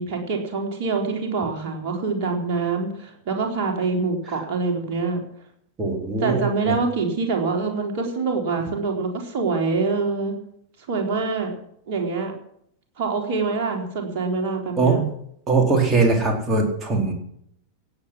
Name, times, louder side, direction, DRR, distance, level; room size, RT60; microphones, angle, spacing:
voice 1, 0.0-5.2 6.2-10.4 10.9-11.6 11.9-12.3 13.0-15.0, right 4 dB, 45° right, 2 dB, 4.1 m, -25 dB
voice 2, 5.8-6.7 14.8-15.0 15.5-17.1, right 3 dB, 20° right, 3 dB, 4.0 m, -21 dB
17.0 x 8.8 x 7.6 m, 0.69 s
figure-of-eight pair, 90°, 0 cm